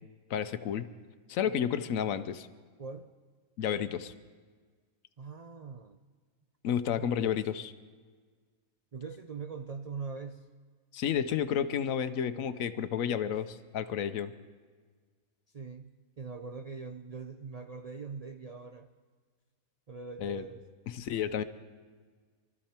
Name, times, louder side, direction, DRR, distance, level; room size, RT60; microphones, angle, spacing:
voice 1, 0.3-0.9 1.3-2.5 3.6-4.1 6.6-7.7 10.9-14.3 20.2-20.4 20.9-21.4, left 8 dB, 70° left, 11 dB, 1.1 m, -31 dB
voice 2, 2.8-3.1 5.2-6.0 6.9-7.1 8.9-10.5 13.3-13.4 15.5-18.9 19.9-20.7, right 5 dB, 90° right, 6 dB, 0.3 m, -42 dB
24.0 x 13.0 x 4.4 m, 1.5 s
omnidirectional pair, 1.5 m